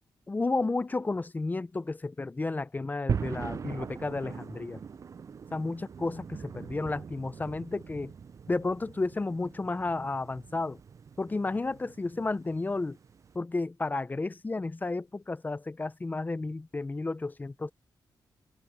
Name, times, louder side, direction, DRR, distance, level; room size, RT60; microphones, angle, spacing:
voice 1, 0.3-4.8 5.5-8.1 8.5-10.8 11.2-13.0 13.3-17.7, left 3 dB, 25° left, 0.6 m, -32 dB
sound 1, 3.1-13.4, right 6 dB, 45° right, 0.3 m, -40 dB
cardioid pair, 85°, 8 cm